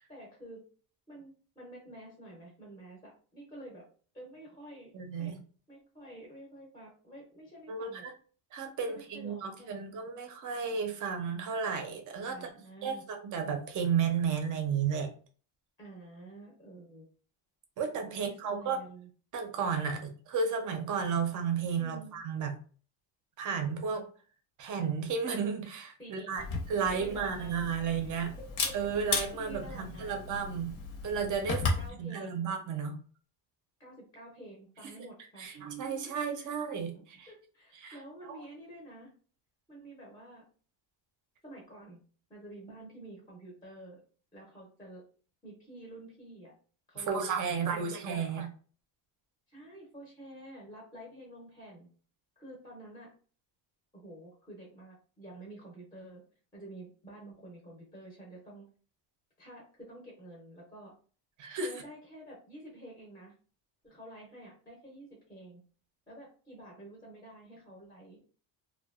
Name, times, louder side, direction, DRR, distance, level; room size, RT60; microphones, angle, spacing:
voice 1, 0.1-0.6 1.1-3.9 4.1-4.9 5.2-5.4 5.7-8.1 8.9-9.8 12.3-13.0 15.8-17.1 18.1-19.1 21.7-22.1 26.0-26.5 26.9-27.5 28.0-29.1 29.4-30.1 31.4-32.4 33.8-35.6 36.4-36.5 36.9-39.1 39.7-40.4 41.4-42.0 42.3-44.0 44.3-45.0 45.4-46.5 46.9-48.4 49.5-51.9 52.4-53.1 53.9-56.2 56.5-58.7 59.4-60.9 61.6-63.3 63.8-65.6 66.1-68.2, right 1 dB, 10° left, -3 dB, 0.6 m, -49 dB
voice 2, 4.9-5.4 7.7-8.1 8.5-12.5 12.8-15.1 17.8-18.8 19.3-22.5 23.4-24.1 24.6-28.3 28.7-30.8 31.0-31.6 32.0-33.0 35.4-37.3 37.8-38.0 38.3-38.4 47.0-48.5 61.4-61.7, right 6 dB, 40° right, 5 dB, 0.5 m, -33 dB
Camera, 26.4-31.9, left 3 dB, 75° left, 0.9 m, -36 dB
2.7 x 2.2 x 2.3 m, 0.41 s
cardioid pair, 155°, 49 cm